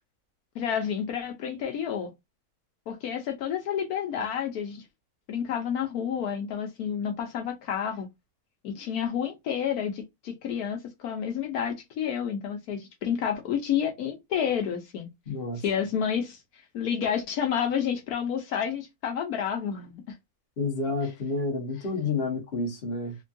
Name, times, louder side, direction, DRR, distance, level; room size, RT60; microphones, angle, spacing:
voice 1, 0.5-2.1 2.9-4.8 5.3-8.1 8.6-15.1 15.6-20.1, left 8 dB, 75° left, 1.2 m, -30 dB
voice 2, 15.3-15.6 20.6-23.2, left 3 dB, 45° left, 1.2 m, -29 dB
3.4 x 2.2 x 2.6 m
omnidirectional pair, 1.6 m